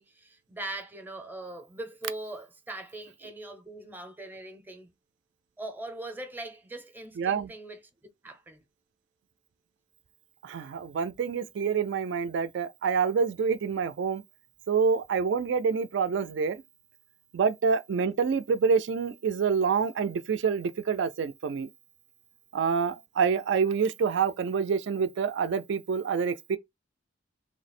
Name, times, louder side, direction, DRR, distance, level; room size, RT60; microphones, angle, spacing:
voice 1, 0.0-4.9 5.6-8.6, right 2 dB, 10° right, 0.6 m, -41 dB
voice 2, 7.2-7.5 10.4-14.2 14.7-16.6 17.3-21.7 22.5-26.6, right 6 dB, 65° right, 0.3 m, -27 dB
3.2 x 2.0 x 4.1 m
head